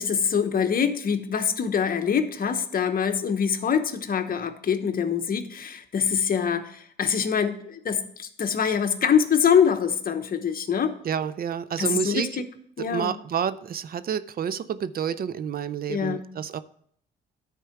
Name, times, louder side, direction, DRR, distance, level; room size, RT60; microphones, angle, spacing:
voice 1, 0.0-11.0 11.8-12.4 12.8-13.1 15.9-16.3, left 7 dB, 45° left, 8 dB, 0.9 m, -24 dB
voice 2, 11.0-12.4 12.8-16.6, right 8 dB, 50° right, 15 dB, 0.5 m, -29 dB
10.5 x 4.5 x 5.9 m, 0.65 s
cardioid pair, 90°, 20 cm